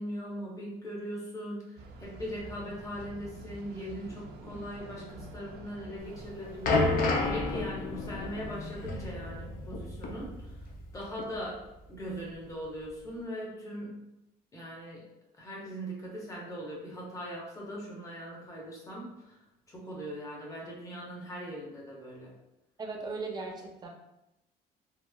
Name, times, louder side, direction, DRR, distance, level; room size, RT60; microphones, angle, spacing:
voice 1, 0.0-10.6 10.9-14.0 14.5-15.1 15.4-19.4 19.7-22.3, equal, 20° left, -4 dB, 0.9 m, -40 dB
sound 1, 1.8-7.3, right 2 dB, 70° right, 0.4 m, -47 dB
sound 2, 6.1-10.9 11.2-11.4 12.1-12.2, left 2 dB, 55° left, 0.5 m, -31 dB
voice 2, 22.8-23.9, right 3 dB, 25° right, 0 dB, 0.5 m, -37 dB
3.0 x 2.0 x 2.2 m, 0.91 s
cardioid pair, 110°, 17 cm